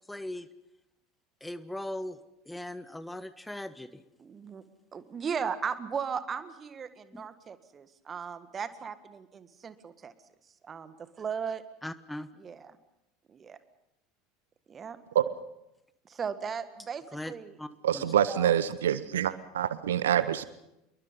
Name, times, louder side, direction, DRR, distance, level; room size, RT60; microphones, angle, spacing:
voice 1, 0.1-0.5 1.4-2.2 2.5-4.0 7.1-7.2 11.8-12.3 17.1-17.3 17.6-17.7 17.9-18.0, left 1 dB, 5° left, 14 dB, 1.1 m, -39 dB
voice 2, 4.2-4.6 4.9-10.1 10.6-11.6 12.4-12.8 13.3-13.6 14.7-15.0 16.0-17.6 18.1-18.5, right 6 dB, 25° right, 12 dB, 1.8 m, -37 dB
voice 3, 17.8-20.5, right 10 dB, 65° right, 16 dB, 0.8 m, -26 dB
27.5 x 23.0 x 5.6 m, 0.88 s
figure-of-eight pair, 75°, 0 cm